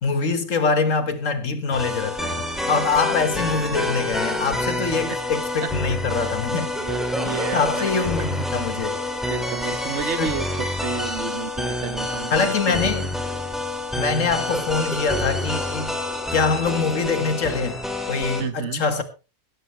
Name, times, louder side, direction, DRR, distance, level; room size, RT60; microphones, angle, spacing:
voice 1, 0.0-6.7 7.3-9.0 10.2-10.3 12.3-13.1 13.9-16.0 16.3-17.8 18.1-19.0, left 4 dB, 75° left, 1.9 m, -24 dB
sound 1, 1.7-18.4, left 1 dB, ahead, 2.5 m, -27 dB
voice 2, 6.5-8.4 9.2-12.9 18.4-18.8, right 6 dB, 60° right, 1.4 m, -32 dB
16.5 x 13.0 x 3.3 m
omnidirectional pair, 1.4 m